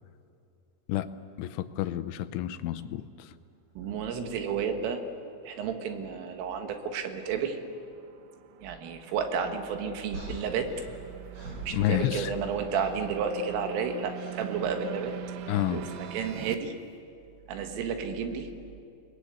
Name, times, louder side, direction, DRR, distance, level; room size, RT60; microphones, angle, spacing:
voice 1, 1.4-3.0 11.7-12.3 15.5-15.8, left 13 dB, 80° left, 12 dB, 3.1 m, -29 dB
voice 2, 3.8-5.0 5.5-7.6 8.6-10.9 11.7-15.1 15.7-16.7 17.5-18.5, right 6 dB, 90° right, 5 dB, 4.3 m, -31 dB
sound 1, 5.3-16.6, right 12 dB, 70° right, 2.8 m, -44 dB
sound 2, 10.1-12.4 12.7-13.1 14.1-14.5 15.8-16.1, right 1 dB, 40° right, 5.5 m, -44 dB
29.5 x 20.0 x 8.4 m, 2.5 s
omnidirectional pair, 5.6 m